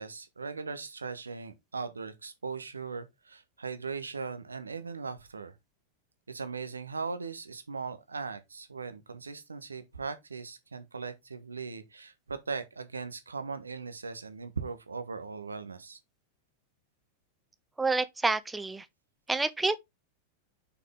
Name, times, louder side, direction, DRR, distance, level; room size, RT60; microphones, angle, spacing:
voice 1, 0.0-5.5 6.3-16.0, right 4 dB, 75° right, 1.2 m, -39 dB
voice 2, 17.8-18.9 19.3-19.7, right 3 dB, 10° right, 0.6 m, -28 dB
6.1 x 5.8 x 3.5 m
figure-of-eight pair, 90°, 0 cm